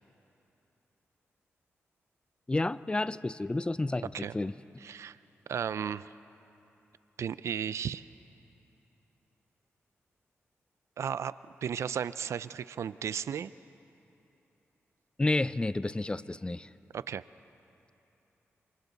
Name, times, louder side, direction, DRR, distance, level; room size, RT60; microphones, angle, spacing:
voice 1, 2.5-4.5 15.2-16.7, left 2 dB, 20° left, 17 dB, 0.5 m, -30 dB
voice 2, 4.8-5.2 5.5-6.1 7.2-8.1 11.0-11.3 11.6-13.5 16.9-17.2, right 8 dB, 80° right, 16 dB, 0.4 m, -34 dB
28.5 x 27.5 x 4.0 m, 2.9 s
cardioid pair, 65°, 5 cm